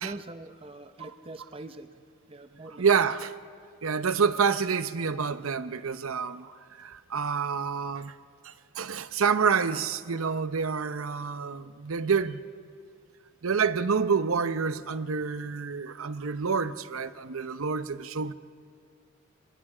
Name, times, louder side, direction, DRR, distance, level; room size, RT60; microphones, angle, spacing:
voice 1, 0.0-2.0 2.3-2.8 12.0-12.1, right 2 dB, 25° right, 0.6 m, -43 dB
voice 2, 2.8-3.3 3.8-8.2 8.4-12.4 13.4-18.3, right 5 dB, 80° right, 0.7 m, -28 dB
27.5 x 21.0 x 5.0 m
head